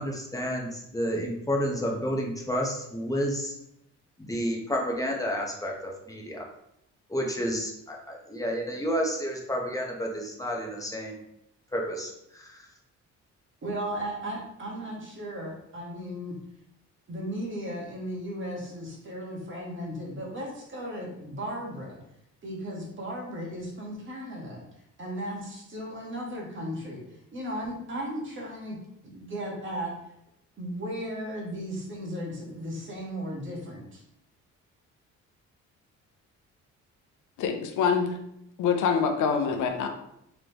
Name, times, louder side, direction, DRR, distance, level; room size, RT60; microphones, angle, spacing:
voice 1, 0.0-3.5 4.3-6.4 7.1-11.2 11.7-12.7, equal, 10° left, -1 dB, 0.9 m, -30 dB
voice 2, 13.6-16.4 17.1-22.0 22.4-24.6 25.0-27.0 27.3-28.8 29.0-29.9 30.6-34.0, equal, 40° right, -2 dB, 1.5 m, -36 dB
voice 3, 37.4-38.2 38.6-39.9, left 6 dB, 80° left, 5 dB, 0.7 m, -25 dB
3.9 x 3.4 x 3.0 m, 0.79 s
cardioid pair, 90°, 30 cm